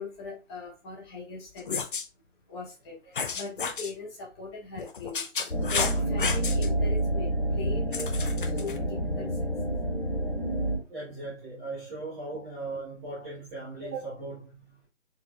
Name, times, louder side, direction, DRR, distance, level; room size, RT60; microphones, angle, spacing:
voice 1, 0.0-1.8 2.5-2.9 3.3-5.2 5.7-9.3, left 3 dB, 20° left, 1.6 m, -40 dB
sound 1, 1.6-2.1 3.1-3.9 4.8-6.7 7.9-8.8, left 5 dB, 45° left, 0.6 m, -31 dB
sound 2, 5.5-10.8, right 1 dB, 85° left, 2.1 m, -28 dB
voice 2, 10.9-14.8, right 3 dB, 10° right, 0.8 m, -38 dB
4.4 x 3.9 x 2.3 m
figure-of-eight pair, 145°, 38 cm